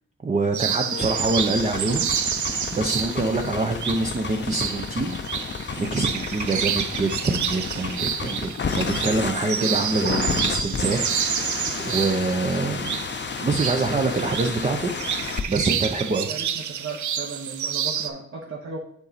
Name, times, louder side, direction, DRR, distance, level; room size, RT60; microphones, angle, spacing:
voice 1, 0.2-2.1 2.7-5.5 5.8-11.5 11.8-13.0 13.4-14.9 15.5-16.3, right 3 dB, 25° right, 3 dB, 0.6 m, -25 dB
sound 1, 0.5-18.1, right 8 dB, 70° right, 0.6 m, -29 dB
sound 2, 0.9-15.4, left 5 dB, 35° left, 0.6 m, -31 dB
voice 2, 16.3-18.8, right 4 dB, 45° right, -2 dB, 1.1 m, -36 dB
7.2 x 4.0 x 4.1 m, 0.73 s
cardioid pair, 80°, 30 cm